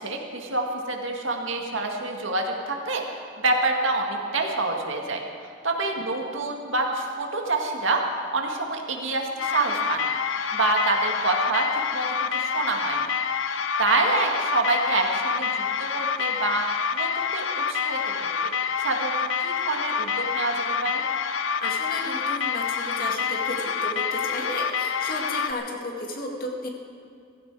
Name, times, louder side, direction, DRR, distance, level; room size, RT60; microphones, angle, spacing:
voice 1, 0.0-3.0 3.4-5.2 5.6-8.0 8.3-10.2 10.5-13.1 13.8-15.7 15.9-16.6 16.9-18.5 18.8-19.2 19.4-21.0, right 2 dB, 80° right, 2 dB, 1.9 m, -27 dB
sound 1, 9.4-25.5, left 6 dB, 80° left, 0.6 m, -27 dB
voice 2, 21.6-26.7, left 1 dB, 50° left, 0 dB, 2.1 m, -33 dB
17.0 x 15.5 x 4.8 m, 2.3 s
head